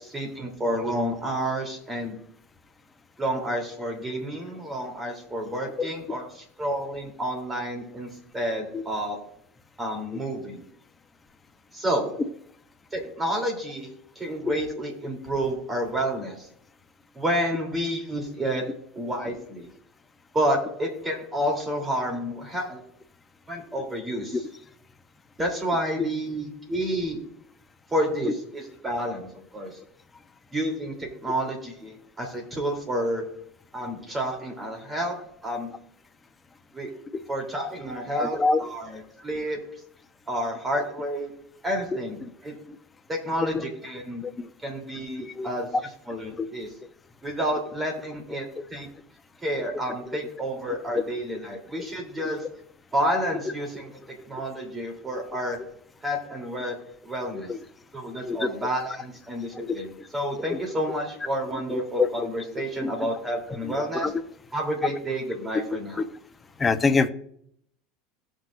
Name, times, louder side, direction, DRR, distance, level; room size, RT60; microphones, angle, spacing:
voice 1, 0.1-2.2 3.2-9.2 9.8-10.6 11.7-12.1 12.9-16.5 17.1-18.7 18.9-19.7 20.3-22.8 23.5-24.4 25.4-27.2 27.9-29.3 29.5-29.7 30.5-33.2 33.7-35.2 35.4-35.7 36.7-36.9 37.3-39.6 40.3-41.3 41.6-42.2 42.4-42.5 43.1-44.2 44.6-45.7 46.1-46.7 47.2-48.9 49.4-52.4 52.9-53.9 54.3-55.6 56.0-56.8 57.0-57.5 57.9-59.9 60.1-64.1 64.5-66.0, equal, 20° right, 2 dB, 3.3 m, -29 dB
voice 2, 38.2-38.6 42.2-42.3 42.7-42.8 43.5-43.6 44.2-44.5 45.3-45.5 46.4-46.5 50.9-51.0 51.8-51.9 57.3-57.6 58.3-58.5 60.5-60.6 61.7-62.3 62.8-63.1 63.6-64.1 64.8-64.9 66.0-66.1 66.6-67.1, left 4 dB, 20° left, 9 dB, 0.8 m, -26 dB
17.5 x 6.3 x 2.6 m, 0.68 s
supercardioid pair, 120°, 0 cm